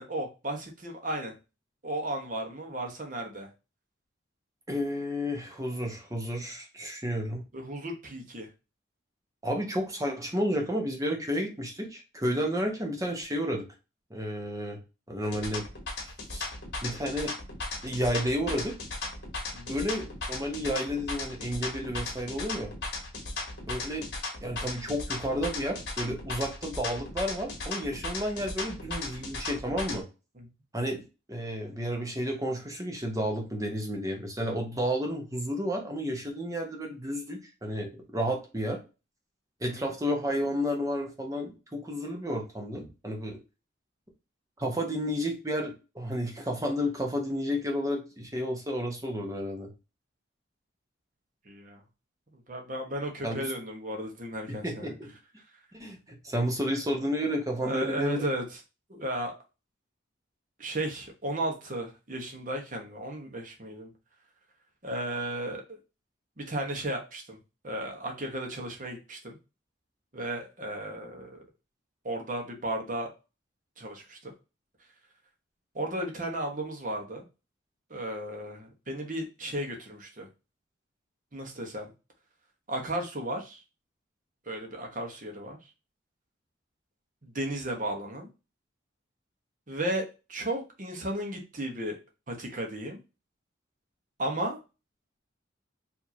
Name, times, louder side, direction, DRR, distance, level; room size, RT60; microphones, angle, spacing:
voice 1, 0.0-1.3 1.8-3.5 7.5-8.5 19.5-19.7 30.4-30.5 39.6-39.9 51.4-51.8 52.5-54.9 57.6-58.4 58.9-59.3 60.6-63.9 64.8-65.8 66.4-67.4 67.6-69.4 70.1-71.4 72.0-73.1 73.8-74.3 75.7-77.2 77.9-80.3 81.3-81.9 82.7-83.6 84.5-85.6 87.2-88.3 89.7-92.0 92.3-93.0 94.2-94.6, right 1 dB, 40° right, 2 dB, 1.1 m, -34 dB
voice 2, 4.7-7.4 9.4-13.7 14.1-14.8 15.1-15.7 16.0-16.4 16.8-17.3 17.8-18.7 19.7-22.7 23.7-24.1 24.4-30.1 30.7-31.0 31.3-38.8 39.6-43.4 44.6-49.7 53.2-53.5 54.5-55.1 55.7-58.2, equal, 15° right, 2 dB, 0.9 m, -31 dB
sound 1, 15.2-30.0, left 2 dB, 55° left, 1.5 m, -36 dB
4.7 x 2.8 x 2.8 m, 0.29 s
head